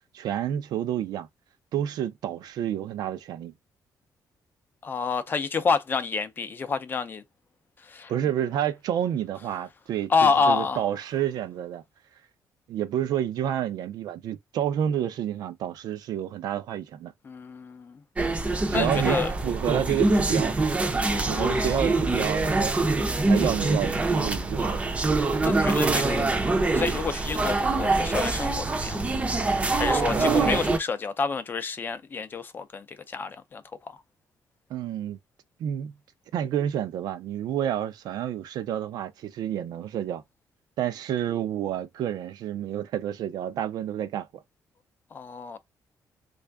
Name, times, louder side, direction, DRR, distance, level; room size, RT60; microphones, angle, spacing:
voice 1, 0.1-1.3 1.7-3.5 8.1-11.8 12.7-17.1 18.7-20.5 21.3-22.7 23.3-24.8 30.1-30.7 34.7-35.2 35.6-35.9 36.3-40.2 40.8-44.4, right 10 dB, 80° right, 0.5 m, -29 dB
voice 2, 4.8-7.2 7.9-8.1 10.1-10.8 17.2-18.0 18.7-19.3 21.0-21.8 25.4-26.3 26.7-29.1 29.8-33.6 45.1-45.6, left 5 dB, 30° left, 0.5 m, -28 dB
sound 1, 18.2-30.8, right 3 dB, 20° right, 0.5 m, -24 dB
3.3 x 2.4 x 3.4 m
cardioid pair, 160°, 7 cm